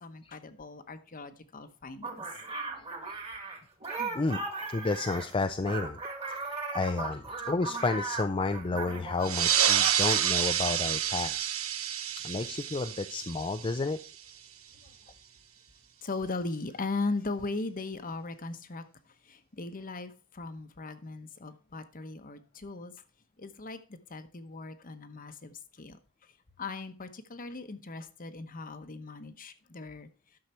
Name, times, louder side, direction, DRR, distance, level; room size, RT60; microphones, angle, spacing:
voice 1, 0.0-2.2 4.0-4.2 16.0-18.8 19.3-22.9 23.4-26.0 26.6-30.1, left 3 dB, 40° left, 1.0 m, -38 dB
sound 1, 2.0-9.3 9.6-10.3, right 3 dB, 30° right, 1.9 m, -37 dB
voice 2, 4.7-6.0 6.3-11.5 12.2-14.0, left 3 dB, 25° left, 0.5 m, -31 dB
sound 2, 9.2-14.3, right 9 dB, 70° right, 0.9 m, -29 dB
11.5 x 6.5 x 4.4 m
head